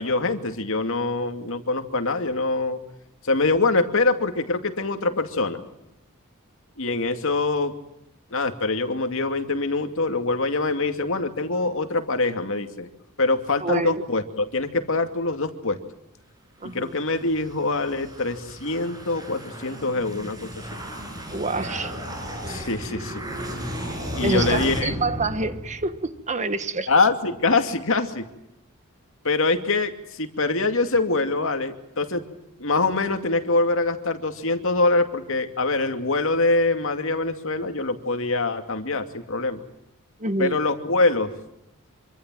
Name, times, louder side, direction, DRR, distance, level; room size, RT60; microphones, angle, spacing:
voice 1, 0.0-2.8 3.2-5.6 6.8-7.7 8.3-12.9 13.2-15.8 16.6-20.5 22.5-23.2 24.1-24.9 26.9-28.3 29.2-32.3 32.6-39.6 40.4-41.3, left 3 dB, 60° left, 7 dB, 2.6 m, -24 dB
voice 2, 13.6-14.0 16.6-16.9 21.3-21.9 24.2-26.9 40.2-40.6, right 2 dB, 30° right, 10 dB, 1.6 m, -27 dB
sound 1, 16.7-26.1, equal, 15° right, 7.0 m, -34 dB
26.5 x 25.0 x 7.7 m, 0.84 s
head